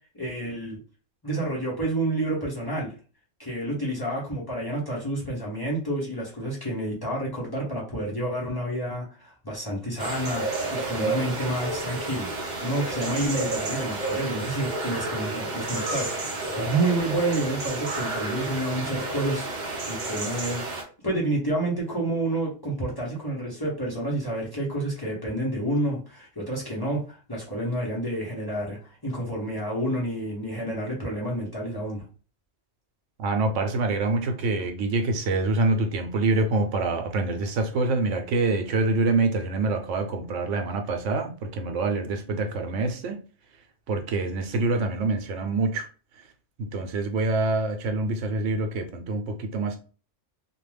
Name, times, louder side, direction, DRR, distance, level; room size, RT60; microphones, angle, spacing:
voice 1, 0.1-0.8 1.2-2.9 3.4-16.2 16.5-20.6 21.0-32.0, right 1 dB, 25° left, 0.6 m, -29 dB
sound 1, 10.0-20.8, right 3 dB, 45° right, 0.7 m, -31 dB
voice 2, 33.2-43.2 43.9-45.9 46.6-49.8, right 2 dB, 80° right, 1.0 m, -26 dB
2.4 x 2.2 x 3.2 m
omnidirectional pair, 1.2 m